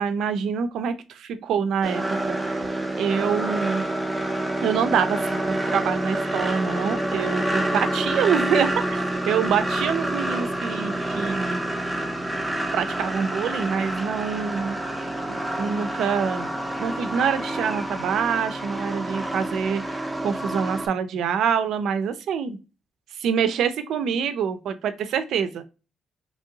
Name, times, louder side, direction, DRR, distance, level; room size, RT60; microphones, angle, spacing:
voice 1, 0.0-2.6 2.9-3.9 4.6-11.6 12.7-14.8 15.3-16.5 16.8-19.8 20.2-22.6 23.2-25.6, right 7 dB, 75° right, 10 dB, 0.4 m, -26 dB
sound 1, 1.8-20.9, right 1 dB, 5° right, 0.5 m, -28 dB
3.0 x 2.6 x 2.7 m, 0.30 s
cardioid pair, 90°, 0 cm